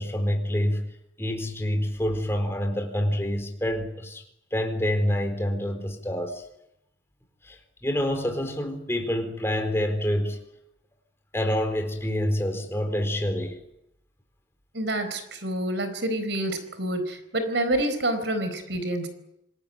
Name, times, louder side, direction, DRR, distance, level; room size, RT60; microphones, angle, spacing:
voice 1, 0.0-4.2 4.5-6.4 7.4-10.4 11.3-13.6, equal, 15° left, 5 dB, 4.2 m, -27 dB
voice 2, 14.7-19.1, right 1 dB, 70° right, 9 dB, 4.4 m, -28 dB
27.0 x 20.0 x 9.1 m, 0.83 s
head